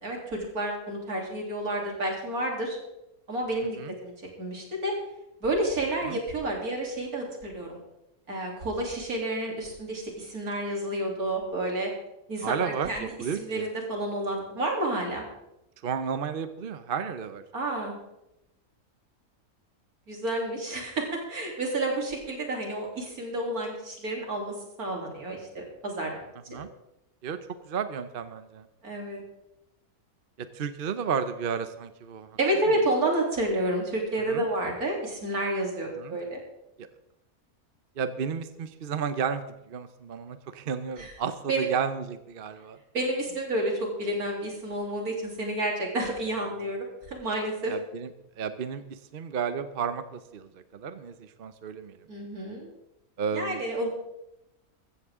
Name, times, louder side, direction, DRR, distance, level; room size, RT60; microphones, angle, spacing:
voice 1, 0.0-2.8 3.3-4.1 4.4-5.0 5.4-7.8 8.3-11.9 12.3-13.1 13.3-15.2 17.5-18.0 20.1-26.6 28.8-29.2 32.4-36.4 41.0-41.1 41.5-41.7 42.9-47.7 52.1-52.7 53.3-53.9, right 1 dB, 75° right, 0 dB, 3.7 m, -30 dB
voice 2, 12.4-13.7 15.8-17.4 26.5-26.7 27.2-27.4 27.6-28.7 30.4-32.3 34.3-34.5 36.0-36.2 36.8-36.9 38.0-42.8 47.7-48.1 48.4-52.0 53.2-53.6, right 6 dB, 45° right, 11 dB, 0.8 m, -32 dB
15.0 x 14.5 x 3.7 m, 0.86 s
omnidirectional pair, 1.6 m